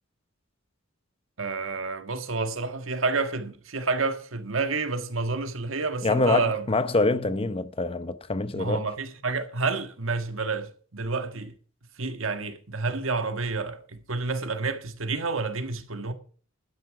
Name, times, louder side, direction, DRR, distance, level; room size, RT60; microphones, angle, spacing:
voice 1, 1.4-6.7 8.5-11.5 12.0-16.1, right 4 dB, 85° right, 1.6 m, -29 dB
voice 2, 6.0-8.9, left 3 dB, 30° left, 0.7 m, -25 dB
12.5 x 9.8 x 4.8 m
head